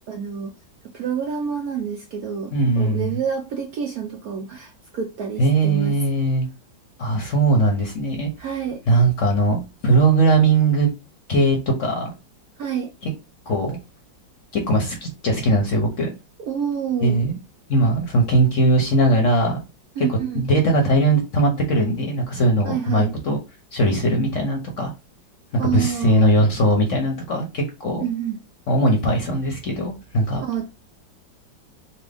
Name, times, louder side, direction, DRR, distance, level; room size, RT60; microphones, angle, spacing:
voice 1, 0.1-0.5 0.9-5.9 8.4-8.8 12.6-12.9 16.5-17.2 20.0-20.4 22.6-23.1 25.6-26.3 28.0-28.4 30.4-30.7, right 7 dB, 70° right, 0.9 m, -28 dB
voice 2, 2.5-3.1 5.4-6.5 7.0-8.3 8.9-10.9 11.3-12.1 13.0-13.1 13.5-13.8 14.5-16.1 17.0-17.4 17.7-19.6 20.1-23.4 23.7-24.9 25.5-28.0 28.7-30.4, right 2 dB, 55° left, 1.0 m, -20 dB
4.3 x 2.2 x 3.4 m
omnidirectional pair, 2.1 m